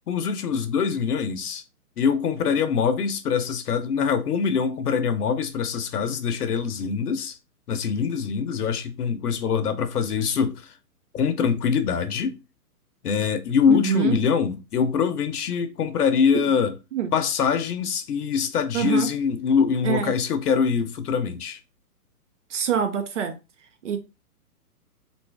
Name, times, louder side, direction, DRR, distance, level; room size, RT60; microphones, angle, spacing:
voice 1, 0.1-1.6 2.0-7.4 7.7-10.6 11.1-12.4 13.0-16.7 17.1-21.6, left 6 dB, 75° left, 0.9 m, -24 dB
voice 2, 13.7-14.2 16.9-17.1 18.7-19.1 19.8-20.2 22.5-23.4 23.8-24.0, right 8 dB, 50° right, 0.7 m, -25 dB
2.8 x 2.6 x 3.3 m
hypercardioid pair, 155°, 47 cm